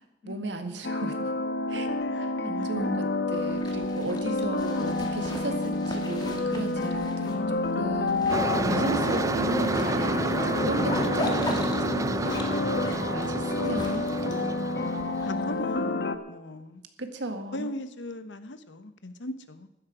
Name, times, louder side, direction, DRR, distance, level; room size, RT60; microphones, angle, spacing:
voice 1, 0.2-1.2 1.7-1.9 2.2-12.4 13.1-14.6 15.5-15.9 17.0-17.7, right 2 dB, 80° right, 6 dB, 1.8 m, -35 dB
sound 1, 0.8-16.2, left 2 dB, 60° left, 1.1 m, -29 dB
Zipper (clothing), 3.3-15.8, left 1 dB, 25° left, 2.0 m, -40 dB
sound 2, 8.3-15.3, right 2 dB, 20° right, 0.4 m, -30 dB
voice 2, 8.6-9.5 13.0-13.4 15.2-16.8 17.5-19.7, left 1 dB, 85° left, 11 dB, 1.1 m, -38 dB
15.0 x 12.5 x 5.0 m, 0.93 s
head